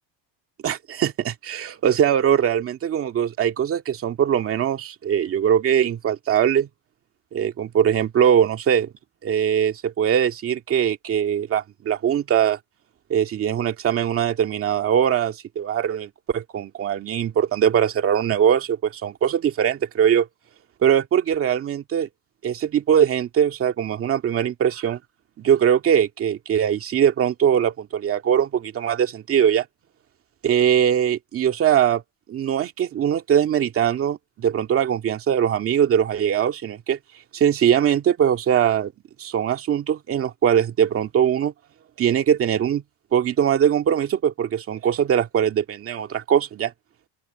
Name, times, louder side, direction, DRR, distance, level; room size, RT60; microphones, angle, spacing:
voice 1, 0.6-6.7 7.3-8.9 9.2-12.6 13.1-20.3 20.8-22.1 22.4-25.0 25.4-29.6 30.4-32.0 32.3-37.0 37.3-38.9 39.2-41.5 42.0-42.8 43.1-46.7, right 9 dB, 30° right, 2.0 m, -21 dB
open air
cardioid pair, 175°, 47 cm